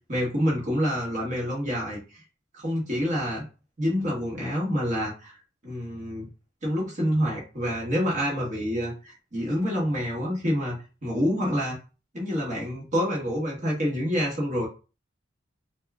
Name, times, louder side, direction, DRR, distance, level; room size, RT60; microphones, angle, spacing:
voice 1, 0.1-2.2 2.5-3.5 3.8-5.3 5.6-6.3 6.6-11.8 12.1-14.7, equal, 40° right, -3 dB, 1.3 m, -27 dB
4.1 x 2.2 x 2.4 m, 0.32 s
head